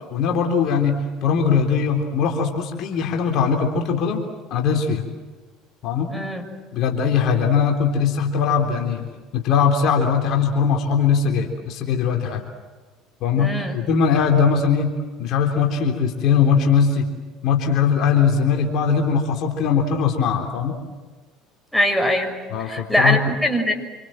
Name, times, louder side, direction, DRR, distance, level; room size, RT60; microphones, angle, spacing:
voice 1, 0.1-1.0 1.2-4.2 4.5-5.0 5.8-6.1 6.7-9.1 9.3-12.4 13.2-14.9 15.2-17.1 17.4-20.8 22.5-23.2, left 6 dB, 60° left, 3 dB, 3.7 m, -20 dB
voice 2, 6.1-6.4 13.4-13.7 21.7-23.7, left 1 dB, ahead, 3 dB, 6.3 m, -22 dB
27.5 x 26.0 x 7.7 m, 1.3 s
hypercardioid pair, 70°, 0 cm